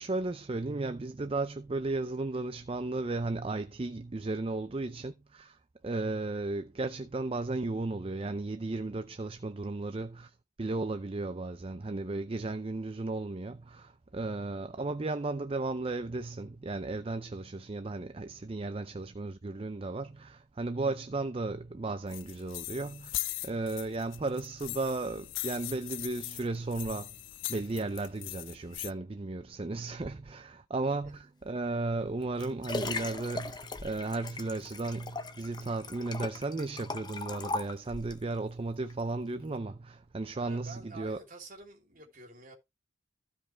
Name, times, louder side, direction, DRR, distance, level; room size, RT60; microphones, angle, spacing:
voice 1, 0.0-5.6 5.8-27.2 27.5-41.2, right 2 dB, 30° right, 0.4 m, -35 dB
sound 1, 22.1-28.9, left 17 dB, 75° left, 0.4 m, -40 dB
Liquid, 32.0-38.3 38.9-39.0, left 3 dB, 20° left, 0.8 m, -39 dB
voice 2, 40.3-42.5, right 2 dB, 45° right, 3.1 m, -49 dB
15.0 x 5.2 x 3.3 m
head